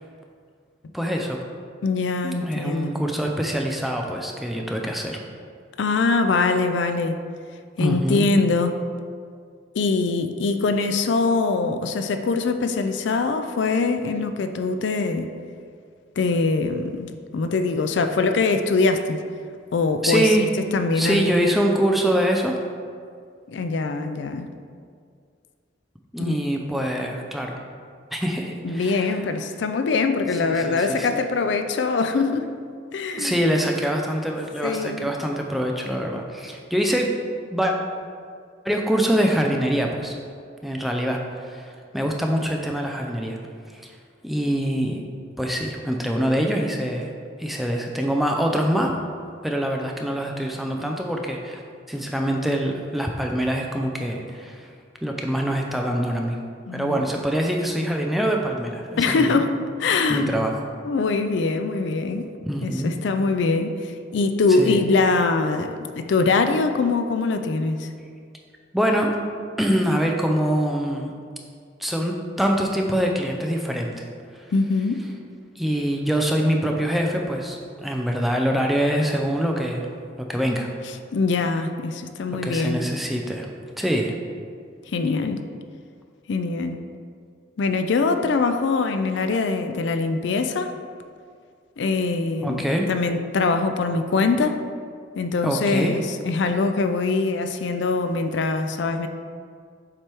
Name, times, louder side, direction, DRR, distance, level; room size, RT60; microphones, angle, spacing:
voice 1, 0.9-1.4 2.2-5.2 7.8-8.3 20.0-20.4 20.9-22.6 26.1-27.6 28.1-29.2 30.4-31.1 33.2-37.1 37.5-37.7 38.6-40.2 40.6-43.4 44.2-45.0 45.4-47.1 47.4-49.0 49.4-51.6 51.9-54.7 55.0-56.4 56.7-59.4 60.1-60.6 62.5-62.9 64.6-64.8 68.7-69.2 69.6-71.1 71.8-74.0 74.3-74.4 75.6-79.9 80.2-80.7 82.4-83.5 83.8-84.1 92.4-92.9 95.4-95.9, equal, ahead, 1 dB, 0.4 m, -24 dB
voice 2, 1.8-2.9 5.8-7.2 7.8-8.7 9.7-15.3 16.2-19.2 19.7-20.5 20.7-21.5 23.5-24.5 26.2-26.4 28.6-32.5 32.9-33.3 34.6-35.1 56.7-57.0 59.0-59.5 59.8-60.3 60.8-62.3 62.6-67.9 74.5-75.0 81.1-82.8 84.9-85.4 86.3-86.8 87.6-90.7 91.8-94.6 95.2-99.1, left 3 dB, 70° left, 8 dB, 0.4 m, -23 dB
7.4 x 3.3 x 4.5 m, 2.2 s
head